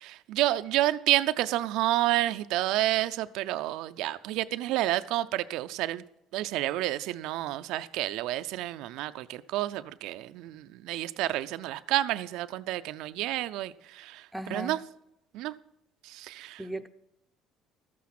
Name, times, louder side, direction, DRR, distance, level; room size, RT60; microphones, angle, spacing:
voice 1, 0.0-6.0 6.3-14.2 14.5-14.8 15.3-15.5 16.1-16.6, right 15 dB, 75° right, 0.4 m, -29 dB
voice 2, 14.3-14.8 16.6-16.9, right 1 dB, ahead, 0.6 m, -36 dB
13.0 x 8.5 x 5.9 m
cardioid pair, 125°, 0 cm